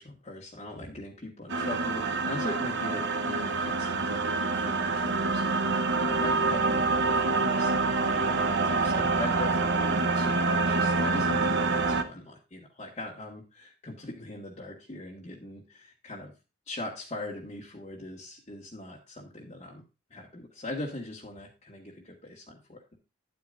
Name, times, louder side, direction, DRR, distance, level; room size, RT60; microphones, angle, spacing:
voice 1, 0.0-16.3 16.7-19.8 20.1-22.9, left 2 dB, 30° left, -3 dB, 1.7 m, -41 dB
sound 1, 1.5-12.0, right 3 dB, 55° right, 1.0 m, -26 dB
11.0 x 8.6 x 2.6 m, 0.29 s
head